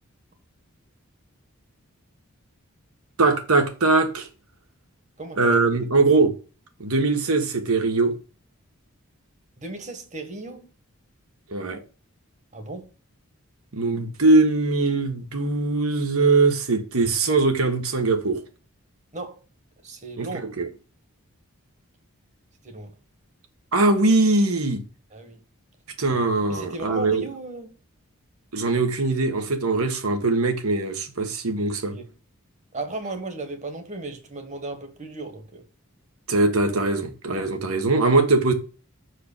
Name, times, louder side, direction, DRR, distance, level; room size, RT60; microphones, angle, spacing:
voice 1, 3.2-4.3 5.4-6.3 6.8-8.1 11.5-11.8 13.7-18.4 20.2-20.3 20.6-20.7 23.7-24.8 26.0-27.2 28.5-32.0 36.3-38.5, right 3 dB, 75° right, 1.5 m, -21 dB
voice 2, 5.2-5.6 9.6-10.7 12.5-12.9 19.1-19.4 19.8-20.5 22.6-22.9 25.1-25.4 26.5-27.8 31.8-32.1 32.7-35.6, right 2 dB, 30° right, 1.4 m, -36 dB
6.1 x 4.9 x 6.6 m
head